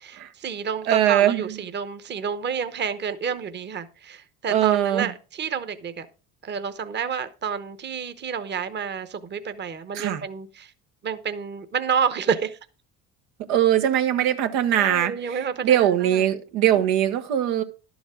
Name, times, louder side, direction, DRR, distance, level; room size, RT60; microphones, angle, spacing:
voice 1, 0.1-6.1 6.4-10.7 11.0-12.6 14.8-16.3 16.7-16.8, right 7 dB, 30° right, 0.9 m, -29 dB
voice 2, 0.9-1.4 4.5-5.1 9.9-10.2 13.5-17.6, right 11 dB, 90° right, 1.3 m, -21 dB
11.5 x 7.1 x 5.0 m
cardioid pair, 115°, 35 cm